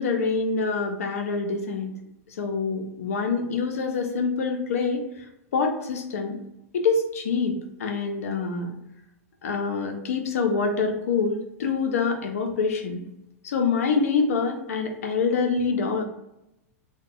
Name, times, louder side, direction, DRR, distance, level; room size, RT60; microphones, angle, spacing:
voice 1, 0.0-1.9 2.4-5.2 5.5-6.4 6.7-7.5 7.8-8.7 9.4-13.0 13.4-16.0, left 4 dB, 80° left, 4 dB, 0.8 m, -25 dB
3.5 x 2.3 x 3.9 m, 0.85 s
hypercardioid pair, 110°, 8 cm